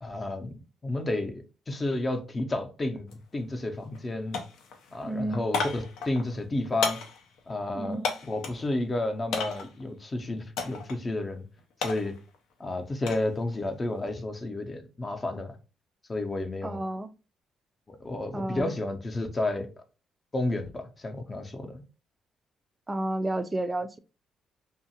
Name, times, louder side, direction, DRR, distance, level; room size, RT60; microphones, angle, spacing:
voice 1, 0.0-4.4 4.9-7.0 7.5-11.5 11.8-12.1 12.6-15.6 16.1-16.8 17.9-19.7 20.3-21.8, left 2 dB, 25° left, 0.6 m, -31 dB
sound 1, 3.1-3.2 3.6-4.1 4.3-8.7 9.3-9.8 10.6-11.0 11.3-13.3 13.6-14.1, left 4 dB, 85° left, 0.6 m, -34 dB
voice 2, 5.0-5.5 7.7-8.2 16.6-17.1 18.3-18.7 22.9-24.0, right 1 dB, 20° right, 0.3 m, -31 dB
2.7 x 2.4 x 2.7 m
cardioid pair, 90°, 0 cm